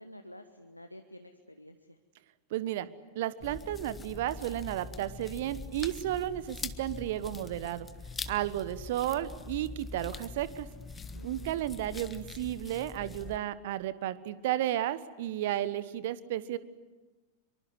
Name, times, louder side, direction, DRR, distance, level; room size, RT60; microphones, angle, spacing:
voice 1, 0.0-2.0 11.1-11.7, equal, 85° left, 6 dB, 1.3 m, -50 dB
voice 2, 2.5-2.9 3.1-7.9 8.3-10.7 11.2-16.6, right 13 dB, 55° right, 16 dB, 1.3 m, -33 dB
sound 1, 3.4-13.4, left 4 dB, 15° left, 1.4 m, -43 dB
25.0 x 24.0 x 9.7 m, 1.2 s
figure-of-eight pair, 90°, 0 cm